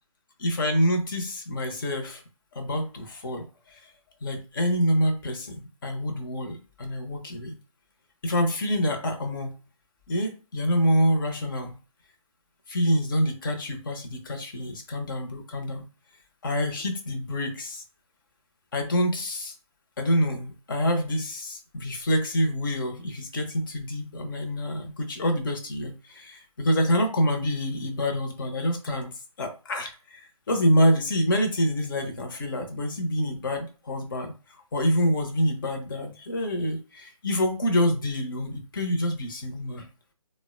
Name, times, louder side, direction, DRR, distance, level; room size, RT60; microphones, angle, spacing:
voice 1, 0.4-2.2 2.5-3.8 4.2-7.6 8.2-9.5 10.1-11.8 12.7-15.8 16.4-17.8 18.7-19.5 20.0-34.3 34.7-39.9, equal, 35° left, 4 dB, 0.7 m, -26 dB
3.9 x 2.1 x 2.4 m, 0.35 s
figure-of-eight pair, 150°, 19 cm